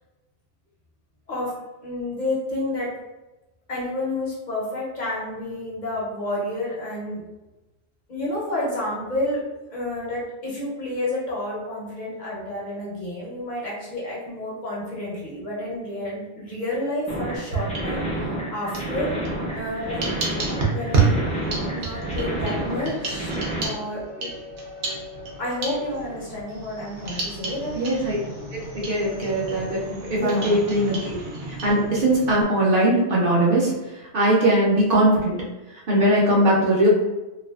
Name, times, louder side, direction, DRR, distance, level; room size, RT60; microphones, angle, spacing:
voice 1, 1.8-2.9 3.7-7.2 8.1-9.4 9.7-18.1 18.5-19.1 19.5-20.0 20.7-21.2 21.7-23.3 23.6-24.3 25.4-28.0 30.1-30.7, left 1 dB, 50° left, -6 dB, 0.7 m, -30 dB
sound 1, 17.1-23.7, right 1 dB, 10° left, 0.5 m, -30 dB
sound 2, 17.3-18.3 18.7-32.4, right 4 dB, 85° right, 0.9 m, -30 dB
voice 2, 27.8-28.2 28.5-31.2 31.6-33.7 34.1-35.4 35.9-36.9, right 1 dB, 60° right, -4 dB, 0.7 m, -20 dB
2.4 x 2.4 x 2.3 m, 1.0 s
omnidirectional pair, 1.1 m